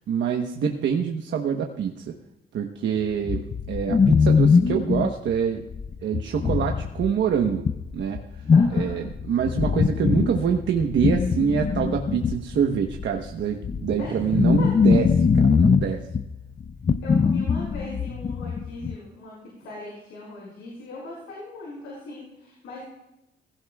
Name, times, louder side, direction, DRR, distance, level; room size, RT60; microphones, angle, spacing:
voice 1, 0.1-2.1 2.5-5.6 6.0-7.7 7.9-8.2 8.7-16.1, right 7 dB, 65° right, 3 dB, 1.1 m, -25 dB
sound 1, 3.3-19.0, left 5 dB, 30° left, 0.5 m, -22 dB
voice 2, 8.5-9.0 14.0-14.3 14.6-14.7 17.0-22.8, left 2 dB, 85° left, -3 dB, 5.4 m, -39 dB
18.5 x 16.0 x 2.3 m, 0.89 s
cardioid pair, 90°, 20 cm